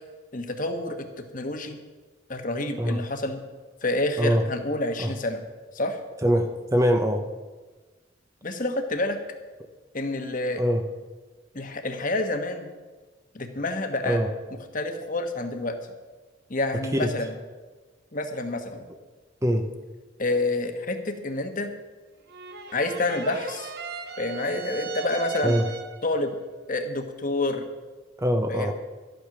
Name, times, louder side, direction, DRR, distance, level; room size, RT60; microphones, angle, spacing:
voice 1, 0.3-1.0 1.3-1.8 2.3-3.4 3.8-5.4 5.7-6.0 8.4-9.2 9.9-10.6 11.5-12.7 13.3-14.2 14.7-15.8 16.5-17.3 18.1-18.8 20.2-21.7 22.7-23.7 24.2-25.6 26.0-26.4 26.7-27.7 28.5-28.7, left 2 dB, 45° left, 6 dB, 1.3 m, -28 dB
voice 2, 6.2-7.2 10.6-10.8 14.1-14.3 16.9-17.1 19.4-19.7 25.4-25.7 28.2-28.7, equal, 15° right, 6 dB, 0.8 m, -23 dB
sound 1, 22.3-26.1, right 6 dB, 55° right, 0.9 m, -37 dB
13.5 x 10.5 x 6.0 m, 1.3 s
head